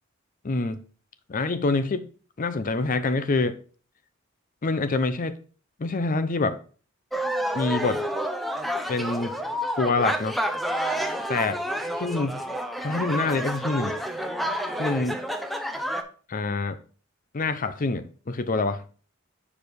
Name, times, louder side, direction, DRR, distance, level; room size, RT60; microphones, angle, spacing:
voice 1, 0.4-0.8 1.3-2.1 2.4-3.6 4.6-5.4 5.8-6.6 7.5-8.0 8.9-9.4 9.8-10.4 11.3-11.6 12.0-12.3 12.8-14.0 14.8-15.2 16.3-16.8 17.3-18.8, left 3 dB, 40° left, 0.6 m, -26 dB
sound 1, 7.1-16.0, equal, ahead, 0.6 m, -29 dB
6.5 x 5.0 x 5.1 m
head